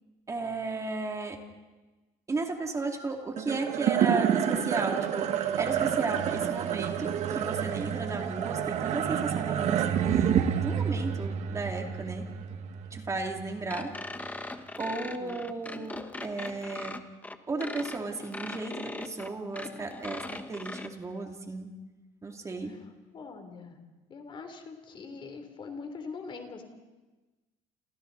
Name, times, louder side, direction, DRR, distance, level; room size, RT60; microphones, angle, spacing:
voice 1, 0.3-1.4 2.3-12.3 12.9-13.9 14.8-17.0 17.5-21.7 22.2-22.7, right 3 dB, 25° right, 2 dB, 2.7 m, -34 dB
sound 1, 3.4-13.9, right 9 dB, 60° right, 1.8 m, -29 dB
sound 2, 13.7-20.9, left 2 dB, 10° left, 1.3 m, -40 dB
voice 2, 15.0-15.4 22.6-23.8 24.1-26.6, left 4 dB, 40° left, 6 dB, 3.3 m, -43 dB
29.0 x 28.5 x 4.1 m, 1.2 s
cardioid pair, 110°, 13 cm